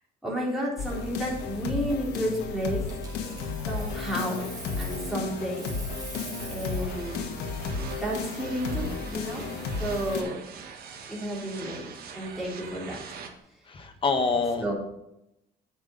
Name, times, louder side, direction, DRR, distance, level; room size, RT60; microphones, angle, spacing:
voice 1, 0.2-2.8 3.7-4.4 4.8-5.6 6.5-7.2 7.9-9.4 9.8-10.4 11.1-11.9 12.1-13.0 14.6-14.7, equal, ahead, -5 dB, 3.4 m, -31 dB
sound 1, 0.8-10.2, left 5 dB, 85° left, 1.2 m, -33 dB
Coin (dropping), 2.9-5.2 5.5-7.0 9.8-10.0, right 3 dB, 20° right, 2.7 m, -44 dB
sound 2, 3.0-13.3, right 6 dB, 65° right, 1.5 m, -43 dB
voice 2, 13.7-14.7, left 4 dB, 30° left, 6 dB, 1.3 m, -26 dB
8.7 x 5.6 x 5.2 m, 0.84 s
cardioid pair, 110°, 17 cm